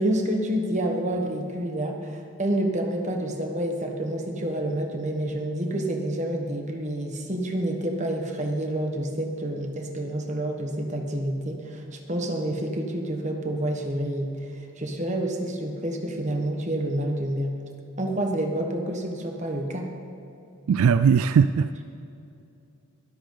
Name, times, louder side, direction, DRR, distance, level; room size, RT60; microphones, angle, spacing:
voice 1, 0.0-14.4 14.8-17.6 18.0-19.9, right 1 dB, 30° right, 2 dB, 1.3 m, -28 dB
voice 2, 20.7-21.8, right 6 dB, 75° right, 12 dB, 0.3 m, -19 dB
22.5 x 8.0 x 4.0 m, 2.8 s
head